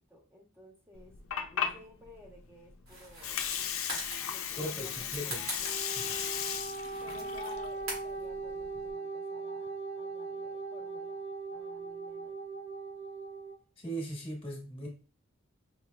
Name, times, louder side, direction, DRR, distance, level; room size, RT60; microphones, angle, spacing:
voice 1, 0.1-1.2 1.5-3.8 4.2-6.2 7.0-11.2 11.5-12.4, left 2 dB, 10° right, 0 dB, 0.9 m, -55 dB
Water, 0.9-8.9, left 8 dB, 80° left, 0.5 m, -36 dB
sound 1, 2.9-8.2, right 1 dB, 85° right, 2.0 m, -44 dB
voice 2, 4.6-5.5 5.9-6.0 13.8-14.9, right 1 dB, 25° left, 0 dB, 1.2 m, -38 dB
Wind instrument woodwind instrument, 5.5-13.6, right 3 dB, 30° right, 0.5 m, -40 dB
5.4 x 3.0 x 2.3 m, 0.35 s
head